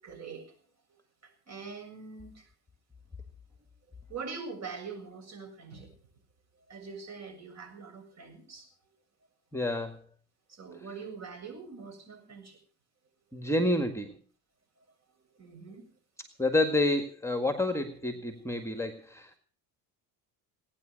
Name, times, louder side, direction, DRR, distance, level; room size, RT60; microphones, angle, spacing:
voice 1, 0.0-0.5 1.2-2.5 4.1-5.9 6.7-8.7 10.5-12.6 15.4-15.9, right 5 dB, 40° right, 4 dB, 7.3 m, -43 dB
voice 2, 9.5-10.0 13.3-14.1 16.4-19.3, left 1 dB, 5° left, 7 dB, 1.8 m, -29 dB
19.0 x 10.0 x 6.4 m, 0.41 s
cardioid pair, 105°, 38 cm